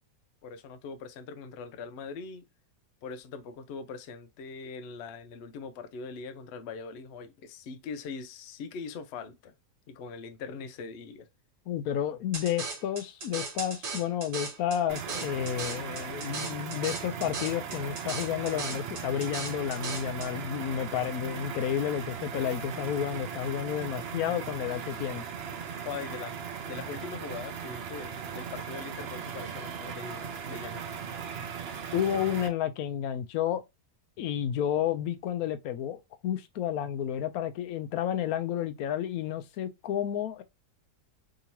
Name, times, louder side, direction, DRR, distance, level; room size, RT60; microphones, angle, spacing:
voice 1, 0.4-2.5 3.0-9.5 9.9-11.3 25.9-26.4 26.7-30.9, left 5 dB, 90° left, 0.5 m, -41 dB
voice 2, 11.7-25.2 31.9-33.6 34.2-40.4, left 10 dB, 70° left, 0.9 m, -31 dB
sound 1, 12.3-20.3, right 4 dB, 55° right, 1.5 m, -38 dB
sound 2, 14.9-32.5, right 7 dB, 80° right, 0.5 m, -38 dB
3.8 x 2.7 x 2.8 m
omnidirectional pair, 1.8 m